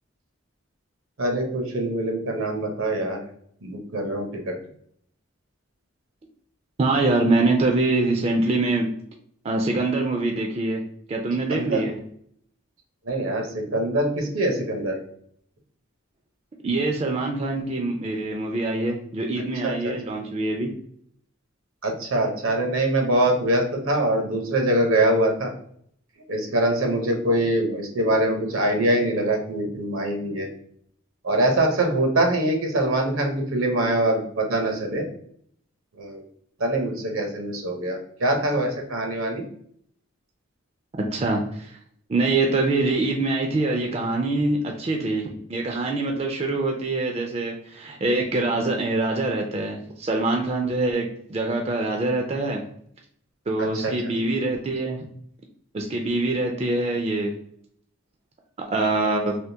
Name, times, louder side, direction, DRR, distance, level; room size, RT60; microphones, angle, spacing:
voice 1, 1.2-3.2 3.6-4.5 11.5-11.8 13.0-15.0 19.6-19.9 21.8-25.5 26.3-30.5 31.2-35.1 35.9-36.2 36.6-39.4 53.6-53.9, right 1 dB, 80° right, 3 dB, 0.9 m, -23 dB
voice 2, 6.8-8.9 9.4-10.8 11.1-12.0 16.6-20.7 40.9-41.8 42.1-52.6 53.5-55.1 55.7-57.3 58.7-59.4, right 2 dB, 30° right, 2 dB, 0.4 m, -24 dB
3.5 x 2.5 x 2.7 m, 0.65 s
head